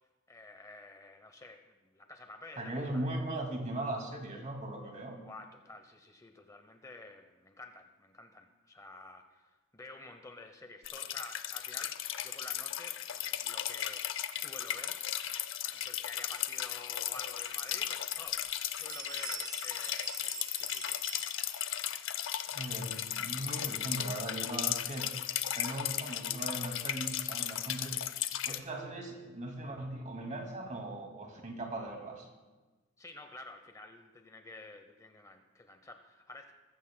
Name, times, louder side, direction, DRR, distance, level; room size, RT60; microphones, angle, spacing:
voice 1, 0.3-3.2 5.2-14.0 14.3-15.0 15.6-21.0 28.4-28.7 33.0-36.5, left 2 dB, 15° left, 6 dB, 0.7 m, -50 dB
voice 2, 2.6-5.2 22.5-25.1 25.5-28.0 28.4-32.3, right 1 dB, 35° right, 2 dB, 2.2 m, -39 dB
sound 1, 10.8-28.6, left 11 dB, 70° left, 0.6 m, -36 dB
Bell, 17.7-17.8 18.3-18.5 18.8-21.9, right 6 dB, 20° right, 0.8 m, -46 dB
21.0 x 14.5 x 2.2 m, 1.2 s
head